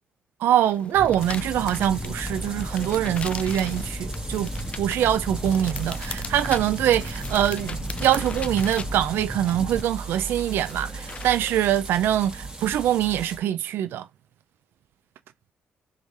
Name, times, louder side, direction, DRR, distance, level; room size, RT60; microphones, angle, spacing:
voice 1, 0.4-14.1, right 11 dB, 75° right, 0.4 m, -24 dB
sound 1, 0.6-11.6, left 4 dB, 30° left, 0.5 m, -40 dB
sound 2, 0.9-9.8, left 1 dB, 5° left, 1.4 m, -35 dB
sound 3, 1.2-13.4, right 3 dB, 20° right, 1.6 m, -37 dB
3.6 x 3.2 x 3.9 m
cardioid pair, 100°, 4 cm